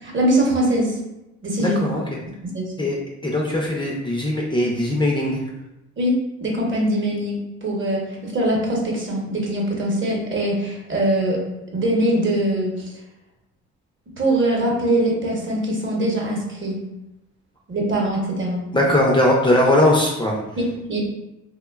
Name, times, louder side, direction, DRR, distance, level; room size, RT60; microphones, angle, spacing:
voice 1, 0.0-0.9 1.4-1.8 2.4-2.7 6.0-11.4 11.7-12.9 14.2-16.8 17.7-18.6 20.6-21.1, right 1 dB, 40° right, -1 dB, 0.8 m, -22 dB
voice 2, 1.6-2.0 2.8-3.0 3.2-5.4 18.7-20.4, left 1 dB, 15° left, -3 dB, 0.4 m, -19 dB
3.0 x 2.1 x 2.2 m, 0.93 s
cardioid pair, 90°, 30 cm